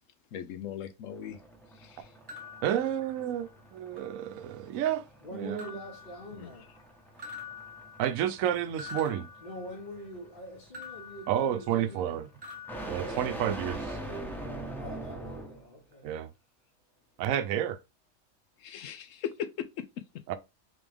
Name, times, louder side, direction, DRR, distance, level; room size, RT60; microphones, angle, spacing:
voice 1, 0.3-1.4 1.7-2.1 6.3-6.5 18.6-20.2, left 9 dB, 70° left, 0.9 m, -39 dB
sound 1, 1.1-15.7, right 2 dB, ahead, 0.9 m, -43 dB
sound 2, 2.3-3.6 4.0-4.7 5.6-6.8 7.2-10.1 10.7-12.1 12.4-13.7, left 4 dB, 20° right, 1.0 m, -47 dB
voice 2, 2.6-5.1 5.3-5.7 8.0-9.3 11.3-12.3 12.9-13.8 16.0-16.3 17.2-17.8 20.3-20.4, right 10 dB, 75° right, 1.0 m, -30 dB
voice 3, 5.2-6.7 9.4-12.2 12.9-13.6 14.8-16.1, left 1 dB, 35° left, 1.0 m, -44 dB
3.8 x 3.5 x 3.4 m
omnidirectional pair, 1.5 m